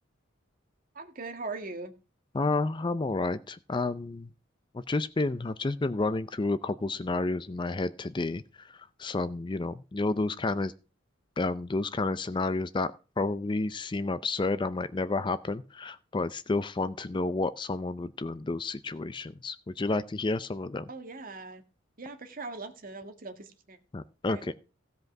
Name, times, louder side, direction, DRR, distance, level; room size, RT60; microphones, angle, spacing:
voice 1, 0.9-1.9 20.9-21.6 22.0-23.8 24.3-24.5, right 3 dB, 45° right, 1.6 m, -40 dB
voice 2, 2.3-4.3 4.7-10.7 11.4-12.9 13.2-20.9 23.9-24.5, left 3 dB, 25° left, 0.4 m, -30 dB
16.0 x 5.3 x 6.0 m
head